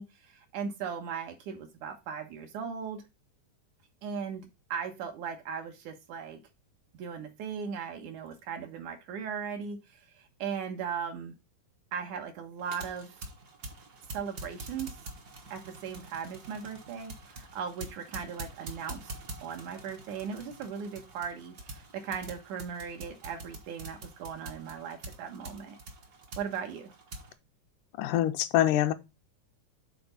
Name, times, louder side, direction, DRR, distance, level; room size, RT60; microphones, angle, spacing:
voice 1, 0.0-3.0 4.0-6.4 7.0-11.3 11.9-13.1 14.1-15.0 15.5-19.1 19.4-25.8 26.4-26.9, right 7 dB, 80° right, 2.6 m, -38 dB
sound 1, 12.6-27.3, right 2 dB, 55° right, 1.1 m, -46 dB
voice 2, 28.0-28.9, left 12 dB, 85° left, 2.1 m, -25 dB
6.9 x 3.9 x 5.3 m
omnidirectional pair, 3.6 m